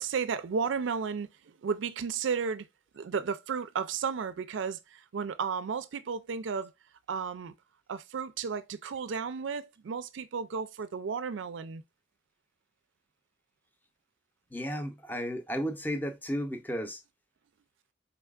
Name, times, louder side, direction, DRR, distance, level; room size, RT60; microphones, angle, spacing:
voice 1, 0.0-2.7 2.9-6.7 7.1-7.5 7.9-11.8, right 6 dB, 80° right, 0.4 m, -33 dB
voice 2, 14.5-17.0, equal, 10° left, 0.6 m, -33 dB
4.4 x 4.0 x 2.3 m
head